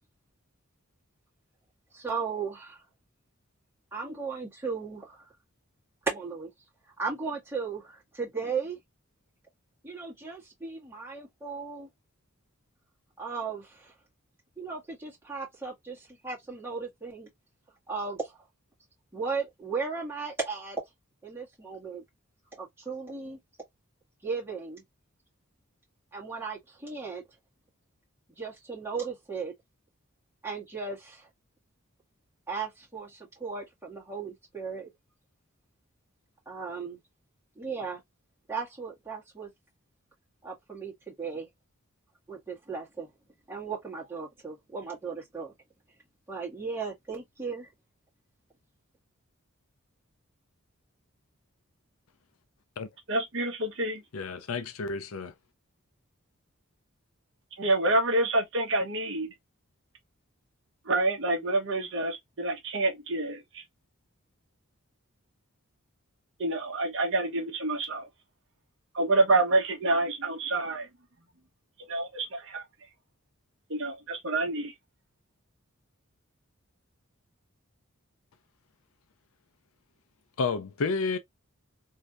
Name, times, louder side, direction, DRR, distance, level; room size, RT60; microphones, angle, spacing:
voice 1, 1.9-2.8 3.9-5.3 6.0-6.5 7.0-8.8 9.8-11.9 13.2-13.9 14.6-17.3 17.9-18.4 19.1-20.8 21.2-22.0 22.5-23.4 24.2-24.8 26.1-27.2 28.4-29.5 30.4-31.3 32.5-34.9 36.4-37.0 37.5-38.0 38.5-39.5 40.4-41.5 42.3-43.1 43.5-45.5 46.3-47.7, right 5 dB, 10° right, 1.7 m, -36 dB
voice 2, 53.1-54.0 57.6-59.3 60.9-63.6 66.4-68.1 68.9-70.9 71.9-72.6 73.7-74.7, right 2 dB, 60° right, 0.9 m, -27 dB
voice 3, 54.1-55.3 80.4-81.2, left 4 dB, 80° left, 0.6 m, -30 dB
3.2 x 2.8 x 2.5 m
head